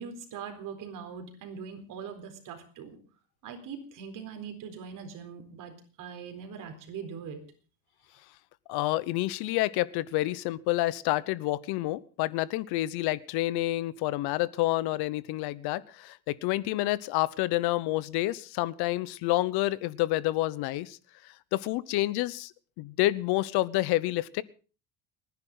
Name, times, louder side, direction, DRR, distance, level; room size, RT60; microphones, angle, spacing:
voice 1, 0.0-3.0 3.4-7.4, right 6 dB, 50° right, 5 dB, 4.2 m, -41 dB
voice 2, 8.7-21.0 21.2-24.4, left 17 dB, 70° left, 19 dB, 0.9 m, -29 dB
29.5 x 10.5 x 3.9 m, 0.37 s
cardioid pair, 160°, 40 cm